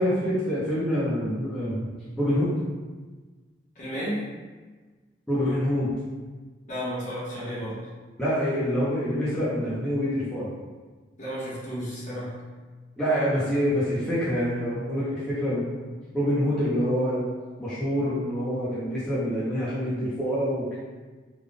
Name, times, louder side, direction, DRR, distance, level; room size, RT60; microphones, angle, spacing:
voice 1, 0.0-1.9 2.2-2.6 5.3-5.9 8.2-10.5 13.0-15.7 16.1-17.2 17.6-20.8, equal, 5° left, -12 dB, 0.7 m, -26 dB
voice 2, 3.7-4.3 6.7-7.7 11.2-12.5, equal, 40° left, -8 dB, 1.2 m, -32 dB
3.7 x 2.3 x 3.4 m, 1.4 s
head